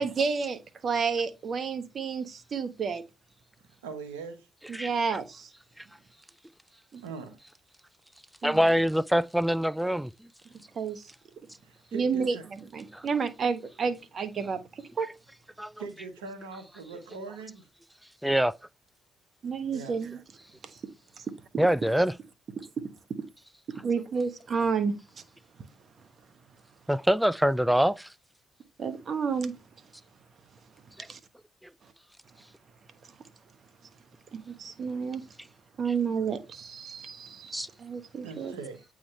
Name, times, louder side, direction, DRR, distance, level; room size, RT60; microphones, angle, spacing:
voice 1, 0.0-3.0 4.7-5.5 6.9-7.0 8.4-8.6 10.7-11.1 11.9-15.1 19.4-20.2 20.6-20.8 21.2-21.3 23.8-25.2 28.8-29.6 31.1-31.2 31.8-31.9 33.0-33.2 34.3-35.2 35.8-38.5, right 5 dB, 55° right, 1.1 m, -31 dB
voice 2, 3.8-4.5 7.0-7.4 11.6-12.4 15.8-17.6 19.7-19.9 38.2-38.8, right 4 dB, 90° right, 1.0 m, -41 dB
voice 3, 8.4-10.1 12.9-13.1 15.6-15.7 18.2-18.5 21.6-22.1 26.9-28.1 31.0-31.1 37.5-37.7, equal, 5° right, 0.3 m, -24 dB
8.6 x 3.7 x 3.2 m
hypercardioid pair, 45°, 0 cm